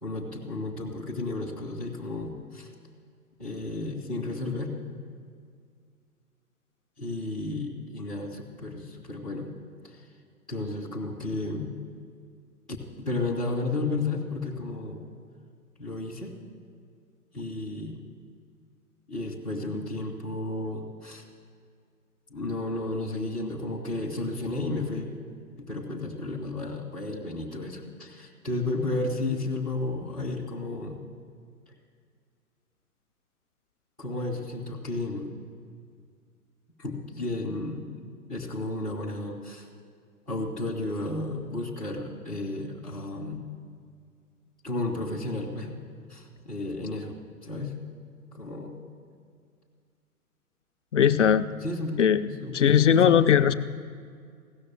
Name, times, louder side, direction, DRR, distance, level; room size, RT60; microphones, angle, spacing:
voice 1, 0.0-2.7 3.4-4.7 7.0-9.5 9.8-10.1 10.5-11.7 12.7-15.0 15.8-16.3 17.3-18.0 19.1-21.2 22.3-25.1 25.6-31.0 34.0-35.3 36.8-39.7 40.3-43.5 44.6-45.8 46.1-47.8 48.3-48.8 51.6-53.2, left 2 dB, 5° right, -8 dB, 0.4 m, -33 dB
voice 2, 50.9-51.5 52.0-52.2 52.5-53.5, left 8 dB, 55° left, 10 dB, 0.5 m, -19 dB
16.0 x 6.7 x 9.0 m, 2.1 s
figure-of-eight pair, 125°, 46 cm